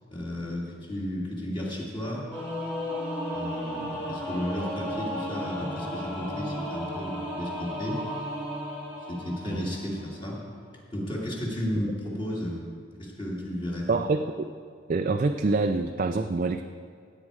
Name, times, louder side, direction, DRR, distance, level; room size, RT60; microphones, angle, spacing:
voice 1, 0.1-2.3 3.3-8.0 9.1-10.4 10.9-12.6 13.0-13.9, equal, 25° left, -4 dB, 2.5 m, -33 dB
Singing / Musical instrument, 2.3-10.1, equal, 10° left, 2.4 m, -34 dB
voice 2, 13.9-14.5 14.9-16.6, right 3 dB, 45° right, 6 dB, 0.4 m, -26 dB
16.0 x 8.5 x 4.8 m, 2.3 s
head